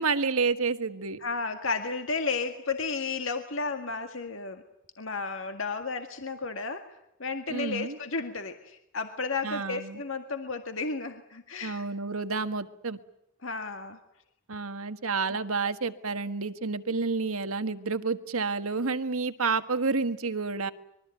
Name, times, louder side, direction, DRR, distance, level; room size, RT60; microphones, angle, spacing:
voice 1, 0.0-1.2 7.5-8.0 9.4-10.0 11.6-13.0 14.5-20.7, right 4 dB, 85° right, 10 dB, 1.6 m, -29 dB
voice 2, 1.2-4.6 5.0-6.9 7.2-11.8 13.4-14.0 15.3-15.4, left 4 dB, 65° left, 6 dB, 1.9 m, -33 dB
26.0 x 22.5 x 9.2 m, 0.77 s
head